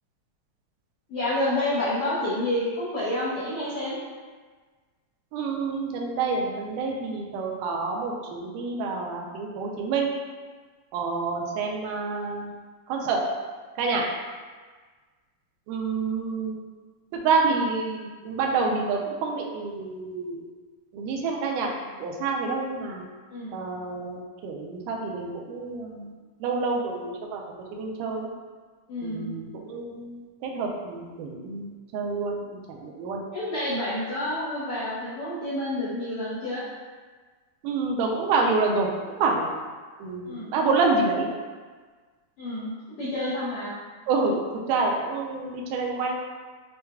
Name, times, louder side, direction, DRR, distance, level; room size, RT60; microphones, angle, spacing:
voice 1, 1.1-3.9 23.3-23.6 28.9-29.3 33.3-36.6 40.2-40.5 42.4-43.7, left 1 dB, 80° left, -11 dB, 1.3 m, -29 dB
voice 2, 5.3-10.1 10.9-12.5 12.9-13.2 13.8-14.0 15.7-16.6 17.1-20.5 20.9-21.7 22.0-23.0 23.5-26.1 26.4-27.4 27.7-28.3 29.0-33.2 37.6-39.5 40.0-41.3 44.1-44.4 44.7-46.2, right 4 dB, 85° right, 0 dB, 2.1 m, -28 dB
6.5 x 2.2 x 2.3 m, 1.4 s
omnidirectional pair, 3.7 m